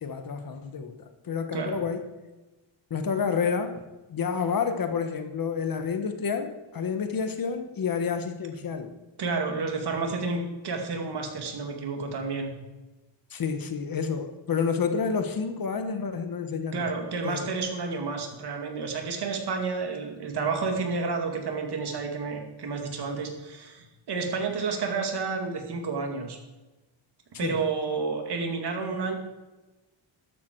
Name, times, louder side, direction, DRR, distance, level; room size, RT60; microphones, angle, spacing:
voice 1, 0.0-2.1 2.9-8.9 13.3-16.9 17.2-17.5 27.4-27.6, left 6 dB, 45° left, 7 dB, 1.2 m, -29 dB
voice 2, 9.2-12.5 16.7-26.4 27.4-29.1, right 4 dB, 55° right, 3 dB, 2.4 m, -30 dB
13.0 x 12.0 x 4.6 m, 1.1 s
wide cardioid pair, 180°, 48 cm